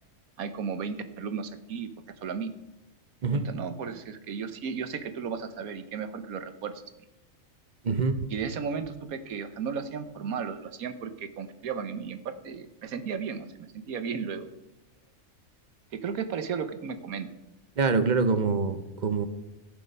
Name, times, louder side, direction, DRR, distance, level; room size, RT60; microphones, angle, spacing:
voice 1, 0.4-1.9 2.2-2.5 3.3-6.8 8.3-14.5 15.9-17.3, right 6 dB, 85° right, 10 dB, 1.4 m, -34 dB
voice 2, 7.8-8.2 17.8-19.3, right 4 dB, 40° right, 10 dB, 0.7 m, -25 dB
15.0 x 6.8 x 5.3 m, 0.94 s
omnidirectional pair, 1.5 m